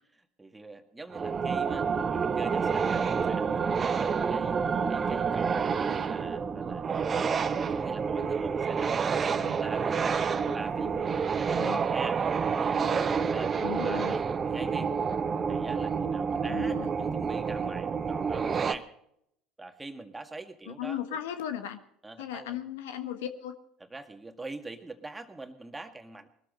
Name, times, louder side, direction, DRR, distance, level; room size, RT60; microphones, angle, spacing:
voice 1, 0.1-4.6 4.9-7.4 7.7-10.2 10.5-12.2 12.6-14.9 15.5-18.9 19.6-21.2 22.0-22.6 23.9-26.3, right 2 dB, 15° right, 6 dB, 2.0 m, -43 dB
sound 1, 1.1-18.8, right 6 dB, 35° right, 1.0 m, -28 dB
voice 2, 9.3-9.6 11.6-11.8 13.6-14.2 16.5-16.9 20.7-21.8 22.2-23.5, left 10 dB, 80° left, 9 dB, 1.3 m, -36 dB
21.0 x 13.0 x 4.0 m, 0.72 s
hypercardioid pair, 70°, 0 cm